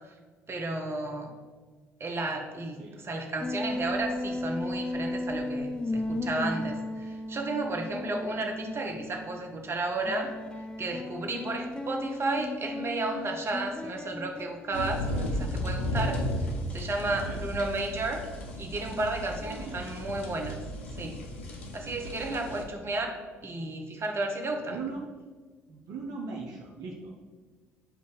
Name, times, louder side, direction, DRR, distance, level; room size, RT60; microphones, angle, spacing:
voice 1, 0.5-1.3 2.0-10.4 10.8-16.3 16.7-18.3 18.6-20.6 20.9-21.2 21.7-24.8, right 2 dB, 40° right, 2 dB, 1.1 m, -33 dB
sound 1, 3.4-9.4 10.1-14.9, left 1 dB, 15° left, 0.5 m, -35 dB
sound 2, 14.7-22.6, left 1 dB, 85° left, 0.7 m, -34 dB
voice 2, 17.1-17.4 19.3-20.1 22.3-22.7 24.7-25.1 25.7-27.2, right 4 dB, 65° right, -1 dB, 0.7 m, -40 dB
7.4 x 2.6 x 5.1 m, 1.4 s
hypercardioid pair, 55°, 7 cm